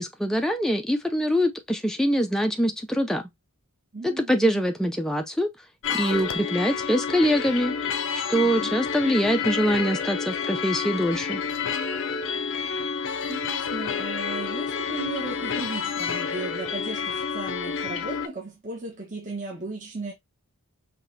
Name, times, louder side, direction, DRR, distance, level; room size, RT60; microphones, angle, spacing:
voice 1, 0.0-3.2 4.0-5.5 5.9-7.8 8.1-11.4, equal, ahead, 0.4 m, -24 dB
voice 2, 3.9-4.6 8.4-8.8 13.3-20.1, right 2 dB, 35° right, 1.1 m, -36 dB
sound 1, 5.8-18.3, left 6 dB, 55° left, 0.5 m, -29 dB
5.6 x 3.0 x 2.7 m
head